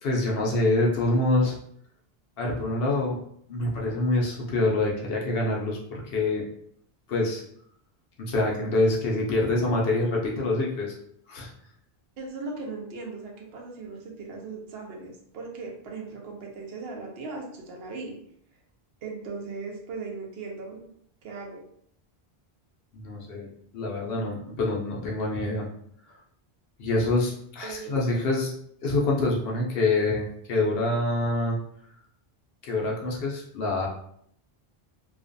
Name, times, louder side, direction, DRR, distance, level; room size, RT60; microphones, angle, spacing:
voice 1, 0.0-1.6 2.4-3.2 3.5-6.4 7.1-7.4 8.2-10.9 11.3-11.5 22.9-25.7 26.8-28.5 28.8-31.6 32.6-33.9, left 2 dB, 75° left, -2 dB, 0.8 m, -26 dB
voice 2, 12.2-18.1 19.0-20.9 21.2-21.6 27.6-27.9, right 4 dB, 75° right, 0 dB, 0.8 m, -38 dB
2.4 x 2.2 x 2.5 m, 0.67 s
omnidirectional pair, 1.0 m